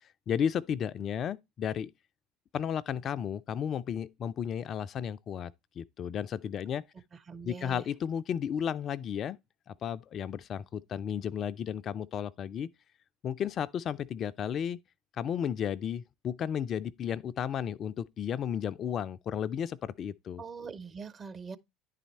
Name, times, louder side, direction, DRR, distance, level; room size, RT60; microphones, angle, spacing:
voice 1, 0.3-1.9 2.5-6.8 7.4-9.4 9.7-12.7 13.2-14.8 15.2-20.4, left 8 dB, 40° left, 0.4 m, -33 dB
voice 2, 7.3-7.8 20.4-21.6, right 5 dB, 30° right, 0.7 m, -42 dB
10.5 x 4.1 x 4.2 m
figure-of-eight pair, 65°, 0 cm